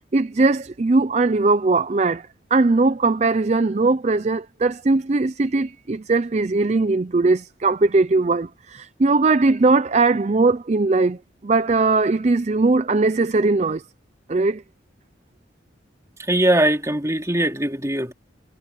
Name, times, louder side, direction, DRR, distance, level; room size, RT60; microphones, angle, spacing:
voice 1, 0.1-11.2 11.4-13.8 14.3-14.6, right 3 dB, 35° right, 0.5 m, -19 dB
voice 2, 16.3-18.1, right 1 dB, 15° right, 3.1 m, -20 dB
head